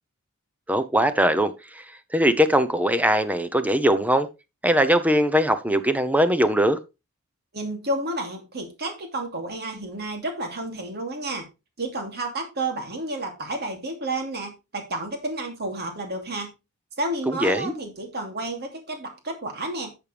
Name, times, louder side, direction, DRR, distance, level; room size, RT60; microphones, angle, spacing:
voice 1, 0.7-1.8 2.1-4.3 4.6-6.8 17.3-17.7, equal, 5° right, 0.7 m, -21 dB
voice 2, 7.5-11.4 11.8-16.5 17.0-19.9, right 2 dB, 50° right, 2.7 m, -31 dB
11.0 x 6.9 x 3.4 m
head